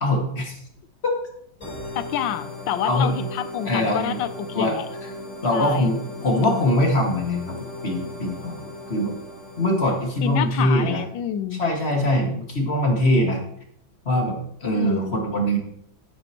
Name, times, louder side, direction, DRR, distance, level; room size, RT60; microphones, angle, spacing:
voice 1, 0.0-0.6 2.9-3.1 3.7-4.2 4.5-4.8 5.4-7.6 7.8-9.2 9.6-11.0 11.6-13.4 14.1-15.6, left 1 dB, 35° left, 1 dB, 2.1 m, -22 dB
sound 1, 1.6-11.0, left 1 dB, 20° left, 4.3 m, -38 dB
voice 2, 1.9-4.8 5.5-5.9 6.3-6.6 10.2-11.6 14.7-15.2, left 10 dB, 80° left, 12 dB, 1.4 m, -28 dB
12.0 x 9.8 x 3.0 m, 0.71 s
omnidirectional pair, 2.1 m